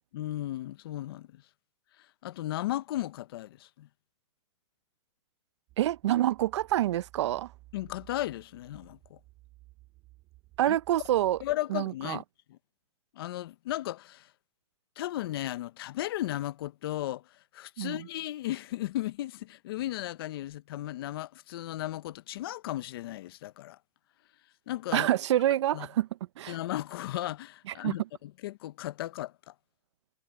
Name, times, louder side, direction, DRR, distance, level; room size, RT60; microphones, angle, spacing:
voice 1, 0.1-1.4 2.2-3.9 7.7-9.2 10.7-10.8 11.4-12.2 12.5-12.6 13.1-14.3 15.0-17.2 17.5-23.8 24.7-25.1 25.7-25.9 26.5-29.5, left 15 dB, 40° left, 0.6 m, -35 dB
sound 1, 5.7-11.6, right 19 dB, 25° right, 3.5 m, -56 dB
voice 2, 5.8-7.5 10.6-11.4 11.7-12.2 17.8-18.1 24.9-26.1 26.4-26.6 27.8-27.9, right 13 dB, 50° right, 0.4 m, -27 dB
hypercardioid pair, 165°, 18 cm